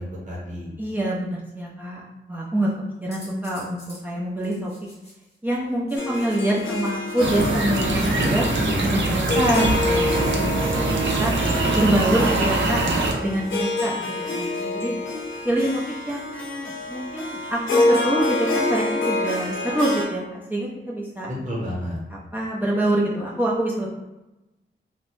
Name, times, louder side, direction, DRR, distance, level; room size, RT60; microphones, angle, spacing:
voice 1, 0.0-0.7 8.1-8.3 8.5-9.0 21.3-22.0, equal, 40° right, -4 dB, 1.0 m, -31 dB
voice 2, 0.8-2.0 2.3-2.7 3.0-4.7 5.4-8.5 8.8-11.3 11.7-12.8 13.2-14.9 15.4-21.3 22.3-23.9, right 1 dB, 10° right, -4 dB, 0.5 m, -25 dB
sound 1, 3.1-4.0 4.4-5.4 5.9-7.6 8.2-8.4 9.1-9.4 10.1-10.4 11.0-11.3 12.2-12.6 13.4-14.3 14.9-15.4, left 1 dB, 30° left, 1.1 m, -48 dB
Harp, 6.0-20.0, left 2 dB, 85° left, 0.6 m, -27 dB
sound 2, 7.2-13.1, right 2 dB, 70° right, 0.5 m, -23 dB
2.7 x 2.1 x 3.1 m, 0.99 s
wide cardioid pair, 90°, 20 cm